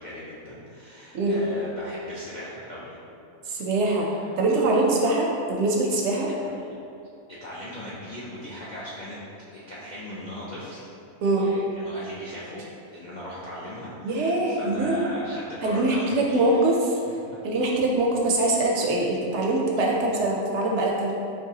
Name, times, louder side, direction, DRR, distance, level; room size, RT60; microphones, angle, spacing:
voice 1, 0.0-3.0 4.1-4.7 6.5-6.6 7.3-9.2 9.5-10.9 11.2-12.6 12.9-16.5 17.3-17.4 19.9-20.1, left 1 dB, 65° left, -8 dB, 0.4 m, -39 dB
voice 2, 3.5-4.1 4.4-6.3 11.2-11.5 14.0-15.1 15.6-17.0 17.4-21.1, right 2 dB, 65° right, -2 dB, 0.7 m, -23 dB
4.5 x 3.0 x 2.7 m, 2.6 s
omnidirectional pair, 1.5 m